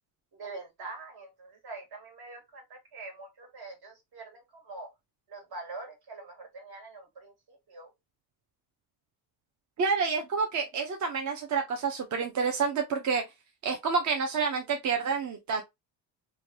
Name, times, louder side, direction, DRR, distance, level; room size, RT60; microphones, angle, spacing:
voice 1, 0.3-4.9 5.3-7.9, right 3 dB, 60° right, 1.6 m, -44 dB
voice 2, 9.8-13.2 13.6-15.6, right 5 dB, 40° right, 0.6 m, -28 dB
3.1 x 2.3 x 2.7 m
cardioid pair, 105°, 43 cm